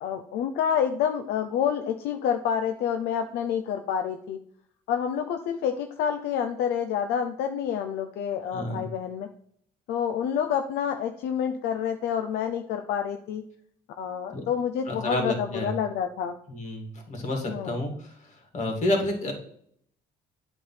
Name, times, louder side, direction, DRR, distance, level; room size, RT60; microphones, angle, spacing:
voice 1, 0.0-4.4 4.9-9.3 9.9-13.4 14.0-16.3 17.5-17.8, left 8 dB, 75° left, 6 dB, 0.7 m, -28 dB
voice 2, 8.5-8.9 14.3-14.4 14.9-15.8 16.5-19.3, left 1 dB, 45° left, 3 dB, 2.5 m, -30 dB
8.6 x 3.6 x 5.7 m, 0.65 s
cardioid pair, 110°, 17 cm